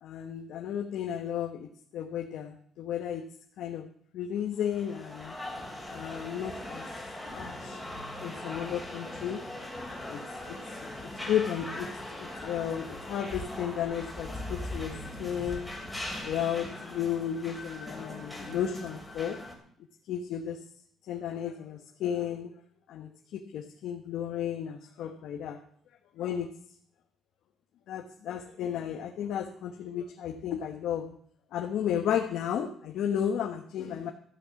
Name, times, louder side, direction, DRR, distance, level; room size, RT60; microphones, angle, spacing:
voice 1, 0.0-3.3 3.6-3.9 4.1-5.4 5.9-6.9 7.3-7.8 8.2-9.4 10.1-10.2 10.5-14.9 15.2-15.7 16.2-19.4 20.1-20.6 21.1-22.5 22.9-25.6 26.1-26.5 27.9-31.2 31.5-34.1, left 9 dB, 70° left, 4 dB, 1.3 m, -33 dB
sound 1, 4.6-19.6, left 1 dB, ahead, 2.7 m, -40 dB
13.5 x 9.0 x 7.2 m, 0.63 s
cardioid pair, 175°, 0 cm